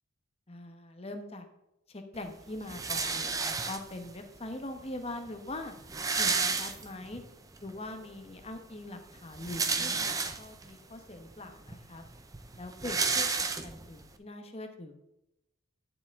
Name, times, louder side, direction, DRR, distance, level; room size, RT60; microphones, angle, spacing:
voice 1, 0.5-1.5 1.9-5.7 6.2-7.2 7.6-12.0 12.6-13.3 13.6-15.0, left 2 dB, 30° left, 6 dB, 1.0 m, -42 dB
sound 1, 2.7-4.1 5.0-5.1 5.3-5.4 5.6-7.2 7.7-7.8 9.2-10.7 11.3-11.4 11.7-14.0, right 4 dB, 15° right, 0.5 m, -31 dB
10.5 x 7.0 x 3.6 m, 0.88 s
head